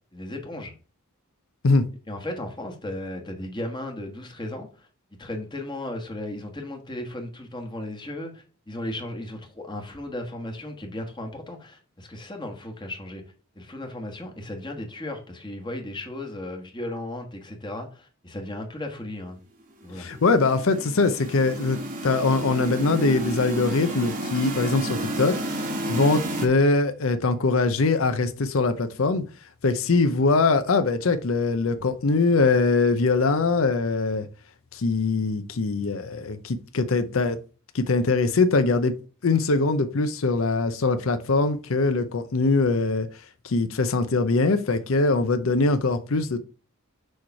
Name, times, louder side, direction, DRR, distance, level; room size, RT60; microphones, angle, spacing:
voice 1, 0.1-0.7 2.1-4.9 5.2-13.2 13.5-19.4 19.8-20.1, left 1 dB, 20° left, 1.2 m, -35 dB
voice 2, 20.0-25.3 25.9-29.2 29.6-34.3 34.7-37.4 37.7-38.9 39.2-43.1 43.4-46.4, left 3 dB, 70° left, 0.6 m, -22 dB
sound 1, 20.0-26.5, right 1 dB, 40° right, 1.2 m, -31 dB
6.3 x 3.2 x 5.7 m
head